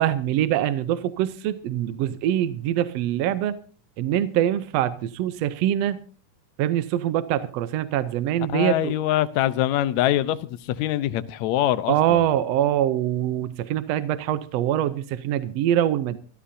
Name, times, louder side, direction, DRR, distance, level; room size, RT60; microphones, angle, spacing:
voice 1, 0.0-3.6 4.0-6.0 6.6-8.9 11.9-16.2, right 11 dB, 75° right, 1.5 m, -24 dB
voice 2, 8.5-12.3, left 13 dB, 70° left, 1.8 m, -24 dB
24.0 x 14.0 x 2.7 m
omnidirectional pair, 3.7 m